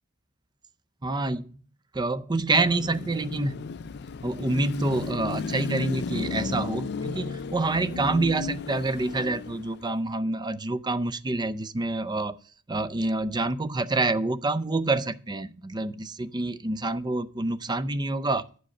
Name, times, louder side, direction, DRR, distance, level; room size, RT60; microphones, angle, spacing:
voice 1, 1.0-1.6 1.9-3.6 4.2-12.4 12.7-18.4, right 2 dB, 20° right, 0.5 m, -27 dB
Car passing by / Traffic noise roadway noise / Engine, 2.6-9.9, left 4 dB, 50° left, 0.4 m, -34 dB
9.6 x 4.9 x 7.6 m
head